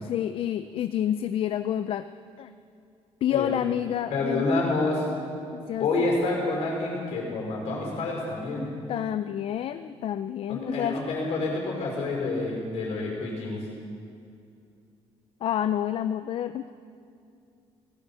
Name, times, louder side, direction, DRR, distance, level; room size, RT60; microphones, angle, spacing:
voice 1, 0.0-2.1 2.4-2.5 3.2-4.5 5.5-6.1 8.9-11.0 15.4-16.7, left 10 dB, 55° left, 11 dB, 0.4 m, -29 dB
voice 2, 4.1-5.0 5.8-8.7 10.5-13.7, left 3 dB, 70° left, -1 dB, 5.1 m, -28 dB
18.5 x 13.5 x 5.6 m, 2.5 s
cardioid pair, 140°, 11 cm